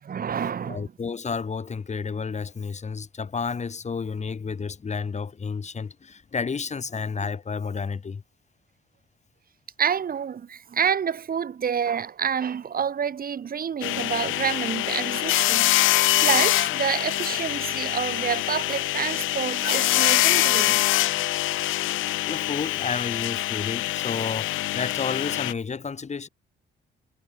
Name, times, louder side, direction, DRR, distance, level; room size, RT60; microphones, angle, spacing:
voice 1, 0.0-0.9 9.8-20.8 22.0-22.2, right 7 dB, 50° right, 1.7 m, -28 dB
voice 2, 0.6-8.2 22.3-26.3, left 5 dB, 35° left, 3.3 m, -31 dB
sound 1, 13.8-25.5, left 16 dB, 90° left, 1.0 m, -24 dB
cardioid pair, 90°, 20 cm